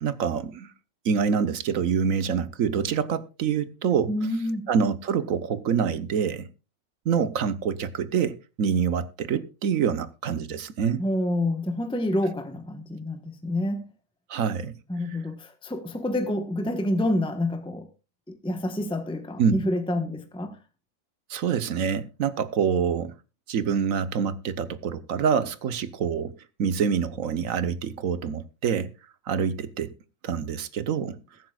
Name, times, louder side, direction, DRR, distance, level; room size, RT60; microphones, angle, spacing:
voice 1, 0.0-0.7 1.0-4.1 4.7-6.5 7.0-11.0 14.3-14.8 19.4-19.6 21.3-23.1 23.5-26.3 26.6-28.9 29.3-29.9 30.2-31.2, right 7 dB, 85° right, 1.3 m, -26 dB
voice 2, 4.1-4.7 11.0-13.8 14.9-17.9 18.4-20.6, left 1 dB, 5° left, 1.1 m, -28 dB
22.0 x 9.2 x 2.3 m
omnidirectional pair, 1.4 m